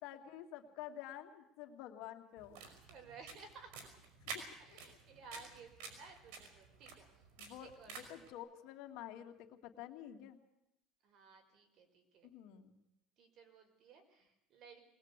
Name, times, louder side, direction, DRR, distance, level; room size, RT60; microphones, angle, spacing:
voice 1, 0.0-2.6 4.2-4.4 4.7-5.0 7.4-10.4 12.2-12.7, left 11 dB, 70° left, 5 dB, 2.5 m, -50 dB
sound 1, 2.4-8.3, right 5 dB, 85° right, 5.3 m, -51 dB
voice 2, 2.9-3.9 4.6-7.2 7.6-7.9 11.0-12.3 13.2-14.8, right 4 dB, 50° right, 5 dB, 5.1 m, -57 dB
21.0 x 20.5 x 8.3 m, 0.83 s
cardioid pair, 135°, 0 cm